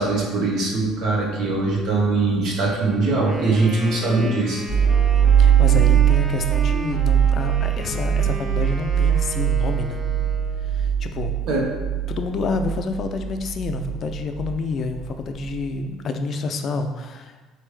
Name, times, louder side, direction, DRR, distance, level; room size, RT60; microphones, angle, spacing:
voice 1, 0.0-4.6 11.4-11.7, right 3 dB, 60° right, -2 dB, 1.1 m, -21 dB
Wind instrument woodwind instrument, 3.0-10.8, right 1 dB, 25° right, 0.4 m, -35 dB
sound 1, 4.7-15.6, right 9 dB, 5° left, 0.8 m, -21 dB
voice 2, 5.4-10.0 10.6-11.3 12.1-17.4, left 4 dB, 45° left, 6 dB, 0.4 m, -28 dB
4.2 x 3.3 x 3.2 m, 1.3 s
cardioid pair, 120°, 0 cm